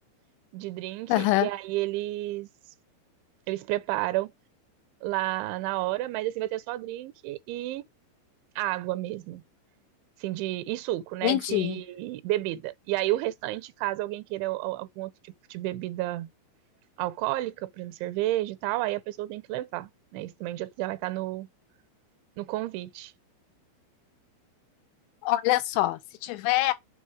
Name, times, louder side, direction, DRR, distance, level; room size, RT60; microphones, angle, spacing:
voice 1, 0.5-2.5 3.5-4.3 5.0-7.9 8.6-9.4 10.2-16.3 17.0-21.5 22.4-23.1, right 16 dB, 85° right, 3.0 m, -31 dB
voice 2, 1.1-1.5 11.2-11.8 25.2-26.7, left 17 dB, 90° left, 3.3 m, -25 dB
7.1 x 4.3 x 4.9 m
omnidirectional pair, 5.4 m